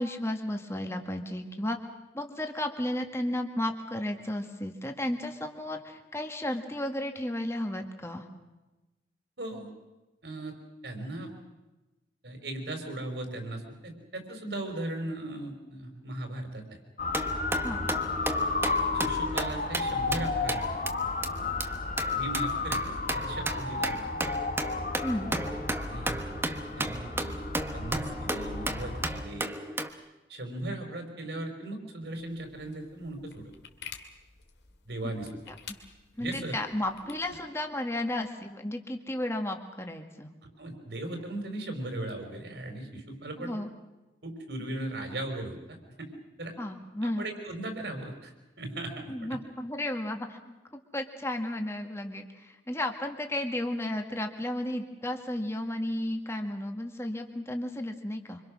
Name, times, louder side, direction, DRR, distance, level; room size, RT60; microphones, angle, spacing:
voice 1, 0.0-1.8 2.1-8.3 17.6-17.9 25.0-25.3 36.2-40.3 43.4-43.7 46.6-47.3 49.1-58.4, left 1 dB, 15° left, 4 dB, 1.9 m, -33 dB
voice 2, 9.4-9.7 10.2-10.5 10.8-11.3 12.2-16.8 18.9-20.6 22.1-24.0 25.8-26.2 26.8-27.5 27.7-29.5 30.3-33.5 34.8-35.3 36.2-36.6 37.1-37.4 40.6-43.6 44.2-46.1 46.4-46.5 47.0-49.4, right 1 dB, 65° right, 5 dB, 4.6 m, -38 dB
Motor vehicle (road) / Siren, 17.0-29.2, left 3 dB, 45° left, 1.4 m, -32 dB
sound 1, 17.1-20.9 21.2-21.3 21.6-21.7 22.0-29.9, right 1 dB, 15° right, 1.2 m, -34 dB
sound 2, 32.1-37.3, left 7 dB, 70° left, 2.5 m, -50 dB
26.0 x 25.5 x 6.3 m, 1.1 s
head